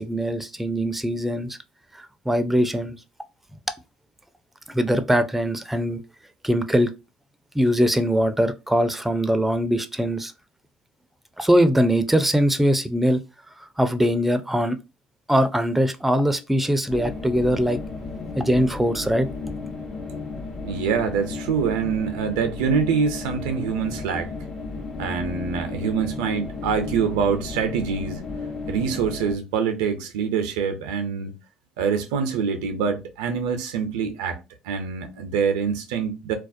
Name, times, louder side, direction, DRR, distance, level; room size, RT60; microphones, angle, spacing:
voice 1, 0.0-1.6 1.9-3.0 4.7-6.0 6.4-6.9 7.5-10.3 11.4-13.2 13.6-14.8 15.3-17.8 18.4-19.3, equal, 5° right, 0.4 m, -22 dB
sound 1, 16.9-29.4, left 3 dB, 55° left, 0.8 m, -34 dB
voice 2, 20.6-24.3 25.0-28.2 28.7-31.4 31.8-34.4 34.6-36.3, right 6 dB, 85° right, 0.4 m, -25 dB
2.3 x 2.1 x 2.5 m
supercardioid pair, 70°, 2 cm